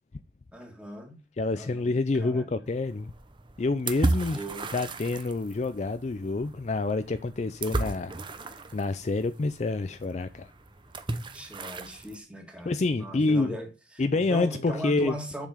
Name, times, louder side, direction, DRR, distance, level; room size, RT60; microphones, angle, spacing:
voice 1, 0.5-1.2 1.5-1.9 2.2-2.5 4.3-5.0 11.3-15.5, equal, 5° right, 1.9 m, -39 dB
voice 2, 1.4-3.1 3.6-4.4 4.7-8.1 8.4-10.5 12.7-13.6 14.0-15.2, left 3 dB, 40° left, 0.4 m, -28 dB
sound 1, 2.6-12.2, right 2 dB, 25° right, 0.7 m, -35 dB
7.2 x 5.7 x 4.9 m
head